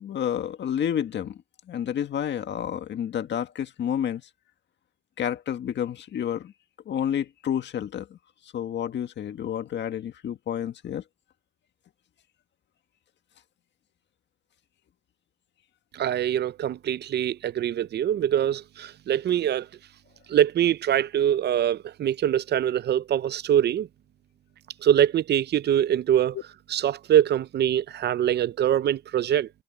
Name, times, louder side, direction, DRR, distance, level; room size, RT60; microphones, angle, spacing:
voice 1, 0.0-1.4 1.7-4.2 5.2-6.5 6.9-8.2 8.4-11.0, left 9 dB, 65° left, 1.8 m, -30 dB
voice 2, 15.9-19.7 20.3-23.9 24.8-26.4 26.7-29.5, right 10 dB, 55° right, 0.6 m, -23 dB
cardioid pair, 90°, 20 cm